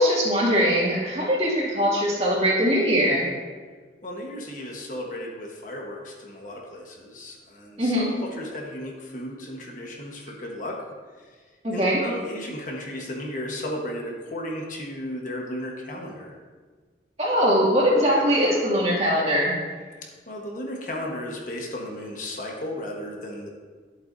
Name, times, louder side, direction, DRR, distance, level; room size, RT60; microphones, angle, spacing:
voice 1, 0.0-3.3 7.8-8.2 11.6-12.0 17.2-19.5, equal, 35° right, -5 dB, 2.3 m, -21 dB
voice 2, 4.0-10.8 11.2-11.3 11.7-16.4 20.3-23.5, left 1 dB, 45° left, -1 dB, 1.3 m, -34 dB
11.0 x 7.9 x 2.7 m, 1.4 s
head